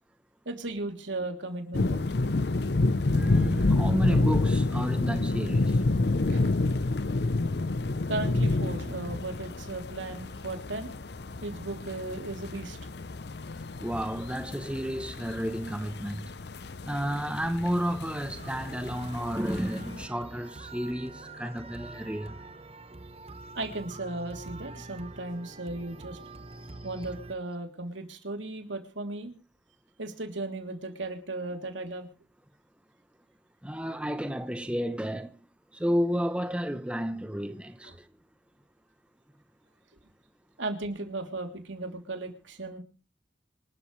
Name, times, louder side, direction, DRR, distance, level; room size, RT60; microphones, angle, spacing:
voice 1, 0.4-2.1 6.3-6.4 8.1-10.9 11.4-12.8 23.5-26.2 26.8-29.3 30.0-32.1 37.8-37.9 40.6-42.8, right 2 dB, 85° right, 3.1 m, -36 dB
sound 1, 1.7-20.1, left 2 dB, 60° left, 0.7 m, -29 dB
voice 2, 3.1-5.8 13.8-16.3 16.8-22.4 26.5-26.7 33.6-35.4 35.7-38.1, equal, 5° right, 0.9 m, -31 dB
sound 2, 18.4-27.4, right 2 dB, 30° right, 1.1 m, -45 dB
26.0 x 12.5 x 3.2 m
head